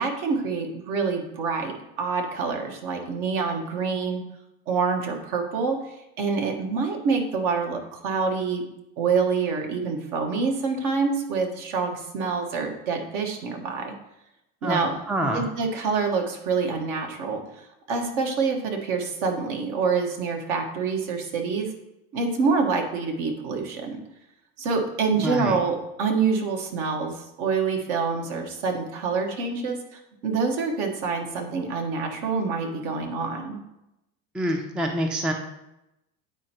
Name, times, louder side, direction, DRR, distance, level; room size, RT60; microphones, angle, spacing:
voice 1, 0.0-4.2 4.7-8.6 9.0-13.9 14.6-14.9 15.3-21.7 22.1-24.0 24.6-33.6, right 4 dB, 60° right, 3 dB, 1.4 m, -26 dB
voice 2, 15.1-15.5 25.2-25.6 34.3-35.3, right 1 dB, ahead, 4 dB, 0.4 m, -26 dB
8.9 x 4.4 x 2.9 m, 0.88 s
hypercardioid pair, 90°, 46 cm